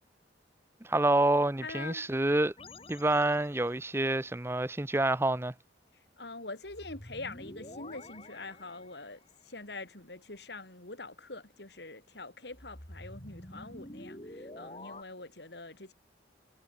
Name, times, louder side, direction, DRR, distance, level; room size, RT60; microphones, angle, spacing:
voice 1, 0.8-2.5 2.9-5.5, right 2 dB, 15° right, 0.7 m, -27 dB
voice 2, 1.6-2.1 5.9-15.9, left 3 dB, 70° left, 4.0 m, -44 dB
sound 1, 2.6-3.9 6.6-9.3 12.5-15.0, left 1 dB, 30° left, 5.3 m, -48 dB
head